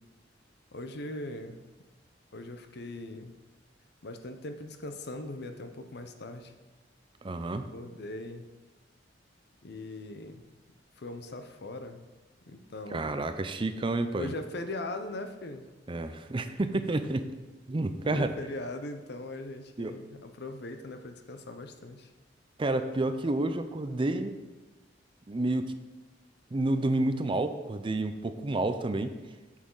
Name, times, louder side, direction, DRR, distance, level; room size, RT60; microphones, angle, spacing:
voice 1, 0.7-1.6 2.3-3.3 4.0-6.5 7.7-8.5 9.6-10.5 11.0-12.0 12.4-13.1 14.1-15.7 18.0-22.1, left 2 dB, 60° left, 7 dB, 0.8 m, -40 dB
voice 2, 7.2-7.7 12.9-14.3 15.9-17.3 17.7-18.3 19.8-20.0 22.6-24.4 25.3-25.7 26.5-29.2, right 2 dB, 30° right, 9 dB, 0.5 m, -30 dB
8.2 x 7.4 x 3.9 m, 1.2 s
head